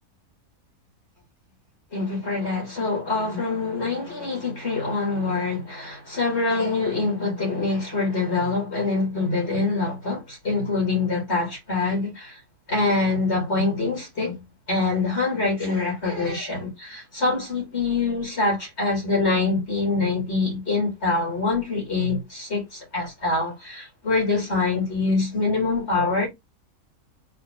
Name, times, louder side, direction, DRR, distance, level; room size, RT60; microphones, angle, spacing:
voice 1, 1.9-12.4 12.7-14.4 14.7-26.3, left 3 dB, 45° left, 2.5 m, -25 dB
4.3 x 2.6 x 3.6 m
omnidirectional pair, 1.6 m